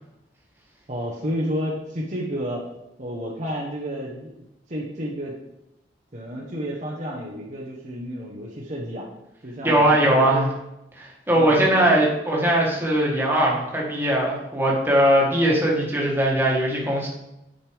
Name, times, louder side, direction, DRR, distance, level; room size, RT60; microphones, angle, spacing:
voice 1, 0.9-2.7 3.0-5.4 6.1-9.1 9.4-10.5 11.3-12.0, equal, 40° right, -3 dB, 1.0 m, -31 dB
voice 2, 9.6-10.5 11.0-17.1, right 1 dB, 10° right, -3 dB, 1.6 m, -20 dB
8.9 x 5.3 x 3.5 m, 0.88 s
head